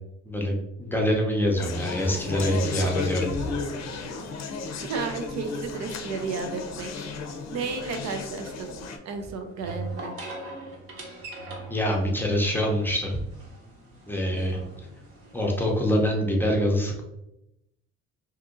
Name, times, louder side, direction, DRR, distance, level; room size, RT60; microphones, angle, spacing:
voice 1, 0.3-3.5 11.7-13.2 14.1-14.6 15.3-17.0, equal, 5° left, -1 dB, 0.6 m, -25 dB
Conversation, 1.6-9.0, left 4 dB, 65° left, 0.5 m, -34 dB
voice 2, 4.8-6.9 7.5-8.7 9.0-10.1, right 4 dB, 65° right, 5 dB, 0.6 m, -33 dB
sound 1, 7.5-16.0, right 2 dB, 50° right, 1.0 m, -42 dB
2.8 x 2.4 x 3.7 m, 0.87 s
cardioid pair, 115°, 29 cm